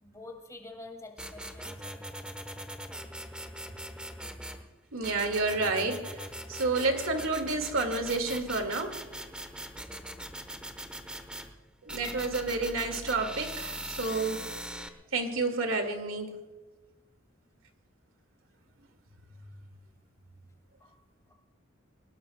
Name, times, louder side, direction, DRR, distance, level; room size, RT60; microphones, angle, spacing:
voice 1, 0.0-2.2 20.8-20.9, left 2 dB, 15° left, 3 dB, 2.3 m, -47 dB
sound 1, 1.2-4.6 5.0-11.5 11.9-14.9, right 1 dB, 5° right, 1.1 m, -41 dB
voice 2, 4.9-6.2 6.5-9.0 11.9-14.5 15.1-16.4, right 3 dB, 80° right, 6 dB, 2.1 m, -30 dB
22.5 x 19.5 x 2.3 m, 1.2 s
head